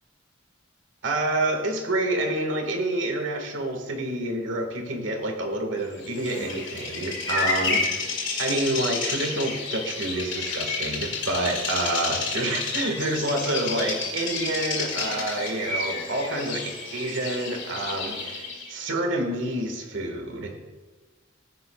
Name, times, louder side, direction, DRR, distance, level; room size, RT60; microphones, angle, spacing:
voice 1, 1.0-8.1 8.4-16.6 16.9-20.7, right 1 dB, 75° right, 3 dB, 1.7 m, -28 dB
Bird vocalization bird call bird song, 6.0-18.7, left 4 dB, 65° left, 2.3 m, -30 dB
15.0 x 9.4 x 2.4 m, 1.3 s
head